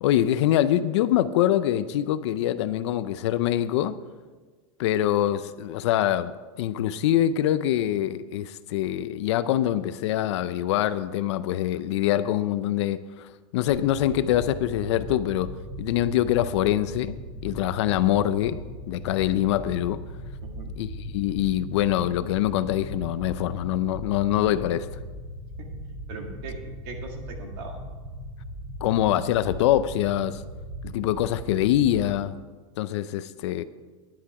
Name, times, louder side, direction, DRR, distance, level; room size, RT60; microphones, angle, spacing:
voice 1, 0.0-4.0 4.8-6.3 6.6-17.2 17.4-18.6 18.9-20.0 20.8-24.9 28.8-30.4 30.8-32.4 32.8-33.6, left 12 dB, 55° left, 14 dB, 0.5 m, -24 dB
sound 1, 13.7-32.2, equal, ahead, 2.7 m, -38 dB
voice 2, 20.4-20.7 25.8-27.8, right 4 dB, 45° right, 3 dB, 2.0 m, -40 dB
10.5 x 10.5 x 4.8 m, 1.4 s
supercardioid pair, 165°, 17 cm